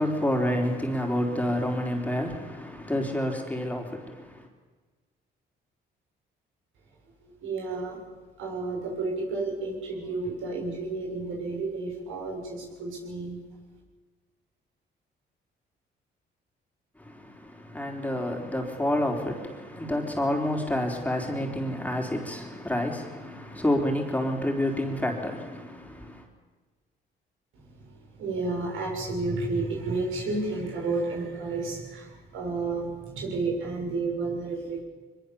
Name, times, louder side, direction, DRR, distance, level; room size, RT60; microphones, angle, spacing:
voice 1, 0.0-4.5 17.0-26.3, left 1 dB, 5° left, 3.9 m, -29 dB
voice 2, 7.2-8.0 8.4-13.4 27.5-34.8, right 3 dB, 80° right, 7.0 m, -31 dB
23.0 x 22.0 x 7.1 m
cardioid pair, 90°, 20 cm